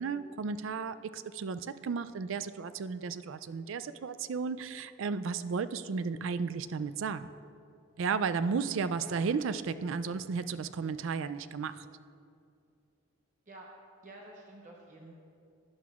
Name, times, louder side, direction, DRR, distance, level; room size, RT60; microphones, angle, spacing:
voice 1, 0.0-7.3 8.0-11.8, right 5 dB, 65° right, 13 dB, 0.4 m, -34 dB
voice 2, 14.0-15.1, right 2 dB, 40° right, -2 dB, 0.9 m, -50 dB
15.0 x 10.0 x 2.4 m, 2.5 s
head